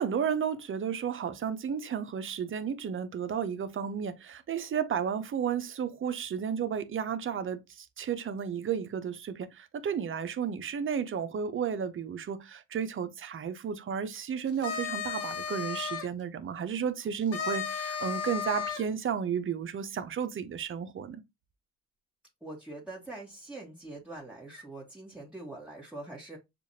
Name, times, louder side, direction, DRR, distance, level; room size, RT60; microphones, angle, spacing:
voice 1, 0.0-21.2, right 7 dB, 45° right, 0.7 m, -33 dB
sound 1, 14.5-16.1 17.3-18.8, left 7 dB, 50° left, 1.2 m, -34 dB
voice 2, 22.4-26.4, right 2 dB, 5° right, 1.4 m, -43 dB
6.8 x 2.4 x 2.7 m
cardioid pair, 90°, 30 cm